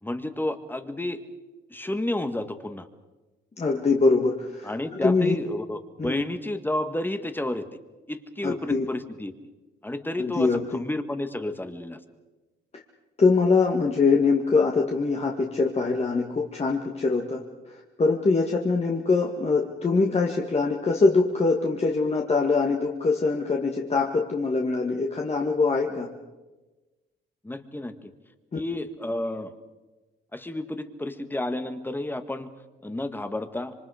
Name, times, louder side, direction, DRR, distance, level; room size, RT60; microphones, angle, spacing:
voice 1, 0.0-1.2 1.7-2.9 4.6-7.6 8.1-9.3 9.8-12.0 27.4-28.1 28.5-29.5 30.3-32.5 32.8-33.7, left 1 dB, 10° left, 9 dB, 1.7 m, -31 dB
voice 2, 3.6-5.4 6.0-6.2 8.4-8.8 10.2-10.8 13.2-17.4 18.0-26.1 28.5-28.6, left 4 dB, 30° left, 0 dB, 1.9 m, -23 dB
26.5 x 24.5 x 5.0 m, 1.2 s
cardioid pair, 90°, 20 cm